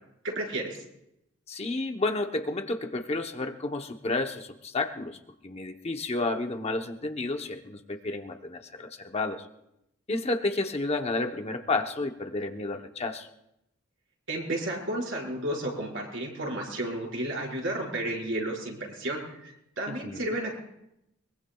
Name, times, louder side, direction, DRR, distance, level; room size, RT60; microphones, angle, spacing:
voice 1, 0.2-0.8 14.3-20.6, right 1 dB, 70° right, -2 dB, 5.1 m, -32 dB
voice 2, 1.5-5.2 5.4-9.5 10.1-13.3 19.9-20.2, left 2 dB, 30° left, 5 dB, 0.9 m, -31 dB
23.0 x 22.5 x 2.3 m, 0.83 s
head